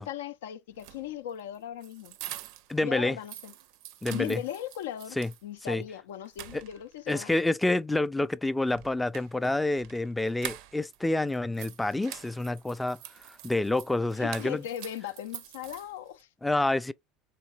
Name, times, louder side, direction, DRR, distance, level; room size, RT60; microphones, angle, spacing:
voice 1, 0.0-2.2 2.8-3.5 4.1-7.3 14.2-16.3, left 11 dB, 80° left, 0.4 m, -38 dB
sound 1, 0.7-2.8 3.1-5.4 5.8-5.9 6.3-7.1 8.7-11.0 11.3-16.2, right 13 dB, 70° right, 0.4 m, -45 dB
voice 2, 2.7-3.2 4.0-4.4 5.2-5.3 5.7-5.8 6.5-6.6 7.1-13.0 13.3-14.6 16.4-16.9, left 2 dB, 10° left, 0.3 m, -28 dB
3.7 x 3.1 x 2.9 m
hypercardioid pair, 80°, 0 cm